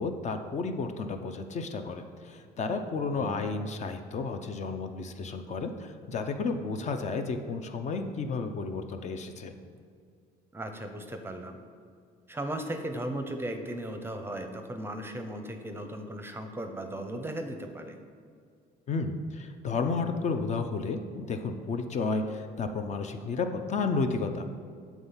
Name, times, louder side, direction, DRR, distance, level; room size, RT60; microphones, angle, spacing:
voice 1, 0.0-9.5 18.9-24.5, left 4 dB, 45° left, 6 dB, 0.5 m, -32 dB
voice 2, 10.5-11.6 12.3-18.0, right 1 dB, 15° right, 5 dB, 0.6 m, -36 dB
7.3 x 3.5 x 5.6 m, 2.2 s
cardioid pair, 110°, 17 cm